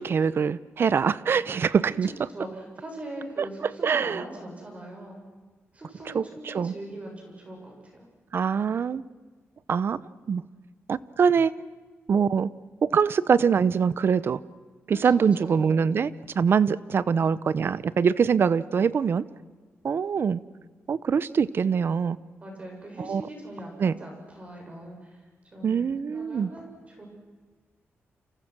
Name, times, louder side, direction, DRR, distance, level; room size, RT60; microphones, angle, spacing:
voice 1, 0.0-2.1 3.4-3.5 3.8-4.2 6.1-6.7 8.3-9.0 9.7-10.0 10.3-10.4 10.9-11.5 12.1-12.5 12.8-14.4 14.9-19.2 19.8-20.4 20.9-22.2 23.0-23.2 23.8-24.0 25.6-26.5, right 6 dB, 55° right, 18 dB, 0.8 m, -23 dB
voice 2, 2.0-5.2 5.7-8.1 15.0-15.8 22.4-27.1, right 1 dB, 30° right, 0 dB, 7.3 m, -41 dB
29.5 x 28.0 x 6.2 m, 1.4 s
wide cardioid pair, 130°, 5 cm